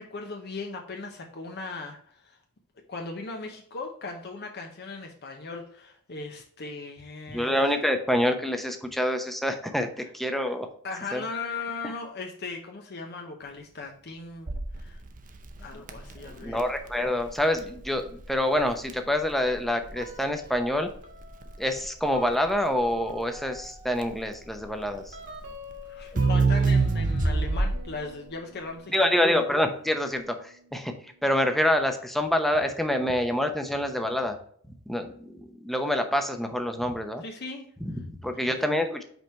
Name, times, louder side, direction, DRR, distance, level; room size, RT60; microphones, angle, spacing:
voice 1, 0.0-2.4 2.9-7.8 10.8-15.0 15.6-16.7 25.8-29.1 37.2-37.7 38.3-38.5, left 3 dB, 50° left, 3 dB, 0.8 m, -38 dB
voice 2, 7.3-10.7 11.1-11.2 11.8-11.9 15.7-15.8 16.2-20.9 21.6-25.2 28.9-30.9 31.2-34.4 34.9-37.2 37.8-39.0, left 1 dB, ahead, 5 dB, 0.7 m, -26 dB
Crackle, 14.5-28.0, right 3 dB, 35° right, 0.6 m, -28 dB
sound 1, 19.9-20.7 21.0-31.4, right 1 dB, 55° right, 1.7 m, -47 dB
5.3 x 4.4 x 4.3 m, 0.62 s
head